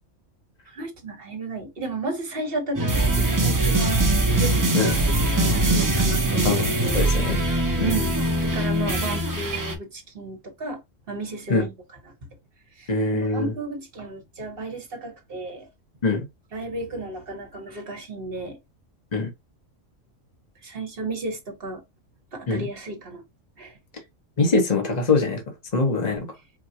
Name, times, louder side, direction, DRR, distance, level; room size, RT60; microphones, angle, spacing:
voice 1, 0.7-4.1 4.4-6.5 6.8-7.0 7.8-10.8 11.1-11.7 12.8-15.7 16.5-18.6 20.6-21.8 22.3-23.2 23.6-23.7, right 3 dB, 45° right, 1.3 m, -33 dB
sound 1, 2.7-9.7, right 2 dB, 20° right, 0.5 m, -22 dB
voice 2, 6.4-7.4 7.8-8.0 11.5-11.7 12.9-13.5 16.0-16.2 19.1-19.3 22.5-22.7 24.4-25.4 25.7-26.3, left 3 dB, 35° left, 1.2 m, -23 dB
4.9 x 2.3 x 2.7 m
omnidirectional pair, 1.3 m